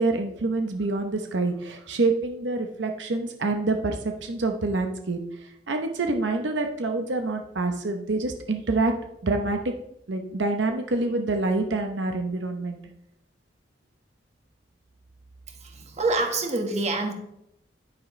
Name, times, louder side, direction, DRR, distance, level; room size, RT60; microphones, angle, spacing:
voice 1, 0.0-5.2 5.7-8.9 9.2-9.7 10.1-12.8, right 3 dB, 85° right, 5 dB, 0.9 m, -26 dB
voice 2, 15.5-17.1, right 2 dB, 40° right, 3 dB, 1.6 m, -27 dB
9.8 x 9.2 x 3.2 m, 0.80 s
head